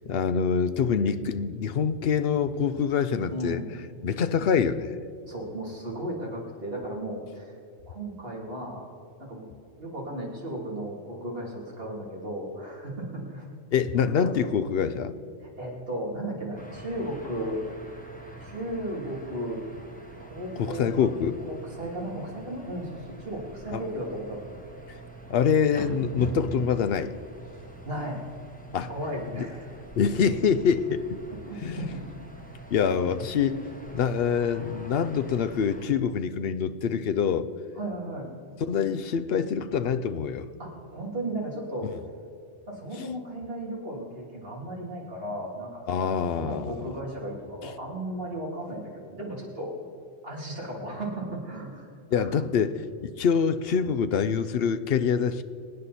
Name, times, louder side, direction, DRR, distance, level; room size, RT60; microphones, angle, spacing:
voice 1, 0.1-3.6 4.0-4.9 13.7-15.1 20.6-21.4 23.7-23.8 25.3-27.1 28.7-28.9 29.3-29.5 30.0-31.0 31.6-31.9 32.7-33.6 33.9-37.5 38.7-40.5 43.0-43.1 45.9-46.7 52.1-55.4, left 7 dB, 60° left, 12 dB, 0.8 m, -25 dB
voice 2, 3.3-3.7 5.3-7.5 7.9-8.9 9.2-9.5 9.8-13.5 13.9-14.7 15.4-17.6 18.4-19.6 20.2-21.1 21.5-24.5 27.8-28.3 28.9-29.8 31.3-32.1 37.7-38.3 40.6-41.9 42.7-49.7 50.2-52.5, right 1 dB, 50° right, -3 dB, 3.2 m, -35 dB
sound 1, 16.6-35.8, right 1 dB, 5° left, 1.3 m, -44 dB
24.0 x 9.5 x 4.2 m, 2.4 s
omnidirectional pair, 1.3 m